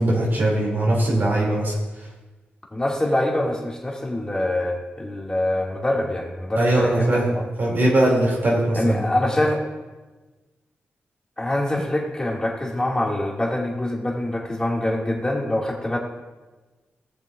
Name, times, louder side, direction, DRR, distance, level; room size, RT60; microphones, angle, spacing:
voice 1, 0.0-1.7 6.6-7.3 7.6-9.0, right 1 dB, 55° right, -4 dB, 2.9 m, -20 dB
voice 2, 2.7-7.4 8.7-9.6 11.4-16.0, left 1 dB, 15° left, -2 dB, 2.5 m, -25 dB
16.5 x 6.9 x 2.6 m, 1.2 s
cardioid pair, 55°, 4 cm